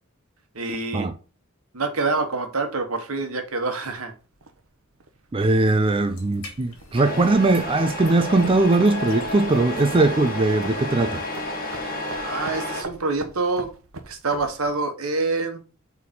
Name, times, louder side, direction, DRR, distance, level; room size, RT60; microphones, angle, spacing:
voice 1, 0.5-1.1 1.7-4.1 12.2-13.7 14.1-15.6, right 3 dB, 85° right, 1.3 m, -26 dB
sound 1, 3.8-14.7, right 3 dB, 70° right, 0.9 m, -43 dB
voice 2, 5.3-11.2, right 2 dB, 25° right, 0.4 m, -20 dB
sound 2, 5.4-11.4, left 2 dB, 80° left, 2.2 m, -48 dB
Truck, 6.9-12.8, left 1 dB, 40° left, 2.0 m, -31 dB
4.6 x 4.2 x 5.3 m
head